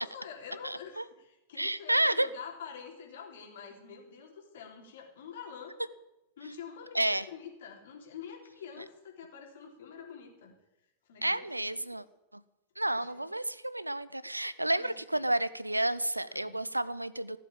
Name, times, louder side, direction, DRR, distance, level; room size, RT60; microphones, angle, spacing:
voice 1, 0.0-5.8 6.4-10.5 11.1-11.7 12.9-13.3 14.8-15.3 16.3-16.6, left 7 dB, 60° left, 1 dB, 3.4 m, -47 dB
voice 2, 0.6-1.0 1.6-2.3 6.9-7.3 11.2-12.0 12.8-17.4, right 1 dB, 85° right, 17 dB, 0.6 m, -30 dB
15.5 x 7.6 x 8.7 m, 0.92 s
figure-of-eight pair, 90°, 0 cm